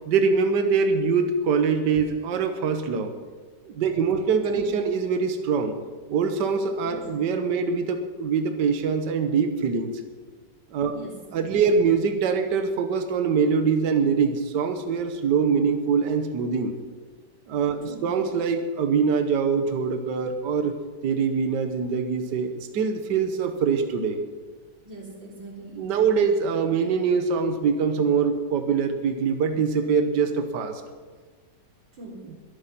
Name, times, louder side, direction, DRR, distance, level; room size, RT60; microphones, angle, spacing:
voice 1, 0.1-3.1 3.6-5.7 6.1-9.9 10.7-10.9 11.3-16.7 17.5-20.8 21.0-24.2 25.8-30.8, right 5 dB, 70° right, 7 dB, 1.6 m, -23 dB
voice 2, 10.9-11.5 17.9-18.2 24.8-25.9 31.9-32.4, right 1 dB, 90° right, -2 dB, 4.1 m, -42 dB
21.5 x 8.9 x 5.7 m, 1.4 s
omnidirectional pair, 2.0 m